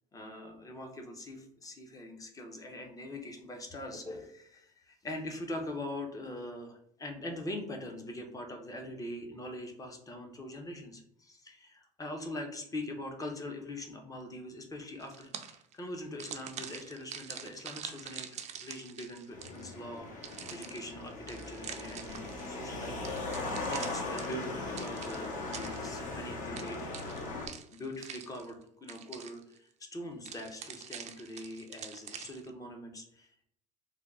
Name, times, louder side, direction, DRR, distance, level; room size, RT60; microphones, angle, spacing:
voice 1, 0.1-33.4, left 1 dB, 20° left, 3 dB, 0.8 m, -43 dB
sound 1, 15.0-15.7 16.2-19.8 20.2-22.5 23.0-26.1 26.5-28.6 28.9-29.6 30.2-32.5, right 8 dB, 40° right, 0.5 m, -45 dB
sound 2, 19.3-27.5, left 2 dB, 50° left, 1.0 m, -39 dB
3.6 x 2.3 x 3.5 m, 0.69 s
cardioid pair, 115°, 17 cm